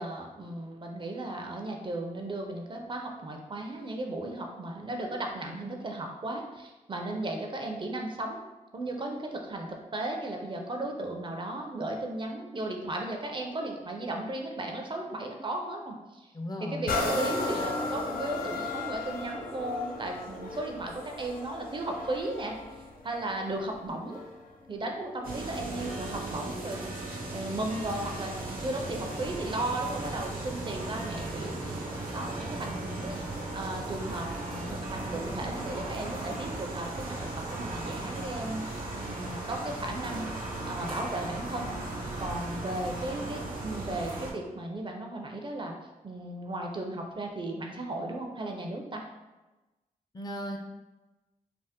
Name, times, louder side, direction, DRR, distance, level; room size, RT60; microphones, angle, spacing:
voice 1, 0.0-8.4 8.7-16.3 16.6-24.2 24.7-26.9 27.3-31.8 32.1-33.2 33.5-40.3 40.6-41.7 42.2-45.7 46.0-49.0, right 1 dB, 35° right, 2 dB, 0.4 m, -35 dB
voice 2, 16.3-16.9 50.1-50.6, left 1 dB, 30° left, 2 dB, 0.4 m, -36 dB
sound 1, 16.9-24.5 25.1-25.2, left 2 dB, 85° left, 0.4 m, -35 dB
sound 2, 25.2-44.3, right 2 dB, 85° right, 0.6 m, -36 dB
3.3 x 2.0 x 2.8 m, 1.1 s
wide cardioid pair, 85°, 15 cm